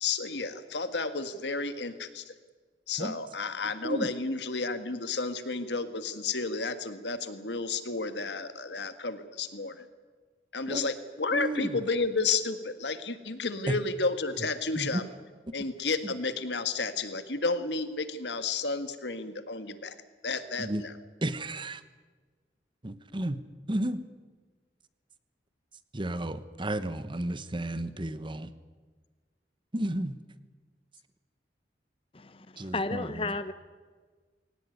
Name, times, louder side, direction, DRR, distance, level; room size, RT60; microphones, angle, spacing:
voice 1, 0.0-2.3 2.9-9.9 10.5-15.0 15.5-19.9 20.2-20.9, left 4 dB, 75° left, 10 dB, 1.8 m, -32 dB
voice 2, 11.3-11.8 13.7-13.8 14.7-15.0 15.6-15.7 16.0-16.1 20.6-20.8 21.2-21.8 22.8-23.4 23.7-24.0 25.9-28.5 29.7-30.2 32.6-33.4, right 1 dB, 30° right, 13 dB, 1.1 m, -32 dB
voice 3, 32.1-33.5, left 3 dB, 30° left, 12 dB, 0.8 m, -33 dB
22.5 x 18.0 x 9.3 m, 1.4 s
head